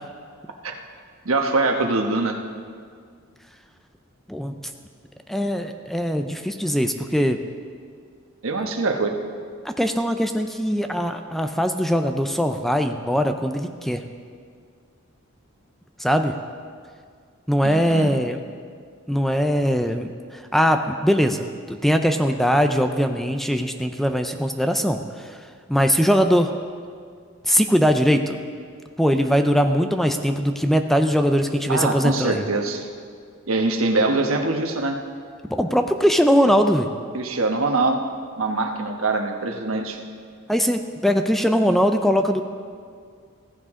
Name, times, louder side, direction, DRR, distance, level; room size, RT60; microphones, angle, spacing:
voice 1, 1.2-2.4 8.4-9.1 17.6-18.1 31.7-32.8 33.5-35.0 37.1-38.0 38.4-40.0, right 3 dB, 80° right, 3 dB, 1.2 m, -23 dB
voice 2, 5.3-7.4 9.6-14.0 16.0-16.4 17.5-18.4 19.1-25.0 25.7-26.5 27.4-28.4 29.0-32.4 35.5-36.9 40.5-42.4, equal, ahead, 6 dB, 0.5 m, -21 dB
15.0 x 14.5 x 3.7 m, 2.1 s
head